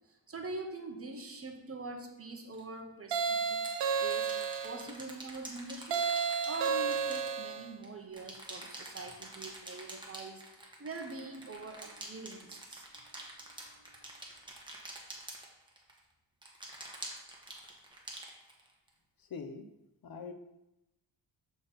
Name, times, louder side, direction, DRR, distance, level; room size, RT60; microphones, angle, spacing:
voice 1, 0.1-3.6 4.0-4.3 4.6-6.0 6.4-10.4 10.8-12.9, right 3 dB, 30° right, 4 dB, 0.7 m, -44 dB
sound 1, 2.5-2.6 3.5-7.9 8.1-16.0 16.4-18.9, right 1 dB, 10° right, 1.1 m, -47 dB
sound 2, 3.1-4.9 5.9-7.7, right 6 dB, 70° right, 0.7 m, -32 dB
voice 2, 19.3-19.6 20.0-20.3, left 5 dB, 50° left, 6 dB, 0.7 m, -42 dB
7.1 x 3.9 x 4.0 m, 0.92 s
wide cardioid pair, 130°, 45 cm